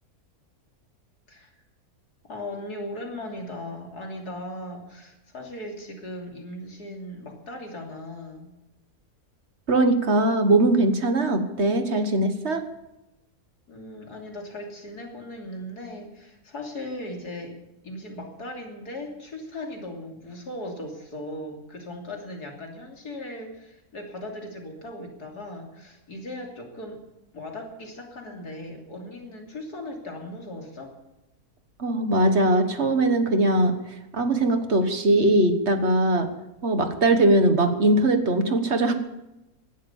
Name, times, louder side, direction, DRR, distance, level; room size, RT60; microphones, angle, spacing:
voice 1, 2.2-8.5 13.7-17.6 17.8-27.0 27.3-30.9, left 1 dB, 85° left, 1 dB, 3.6 m, -38 dB
voice 2, 9.7-12.6 31.8-33.7 34.1-36.3 36.6-38.9, right 1 dB, 45° right, 8 dB, 1.6 m, -21 dB
17.0 x 12.0 x 7.1 m, 0.94 s
omnidirectional pair, 1.6 m